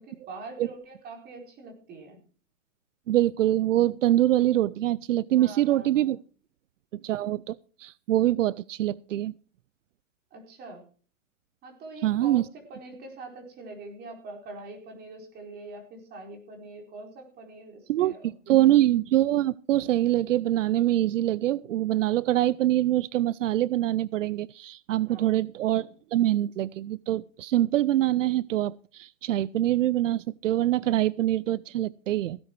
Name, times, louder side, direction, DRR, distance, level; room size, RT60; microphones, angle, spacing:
voice 1, 0.0-2.2 5.3-6.2 10.3-10.9 11.6-18.5 25.1-25.4, right 2 dB, 25° right, 4.4 m, -44 dB
voice 2, 3.1-6.2 7.0-9.3 12.0-12.4 17.9-32.4, right 13 dB, 80° right, 0.5 m, -24 dB
16.5 x 9.7 x 4.6 m
hypercardioid pair, 135°, 37 cm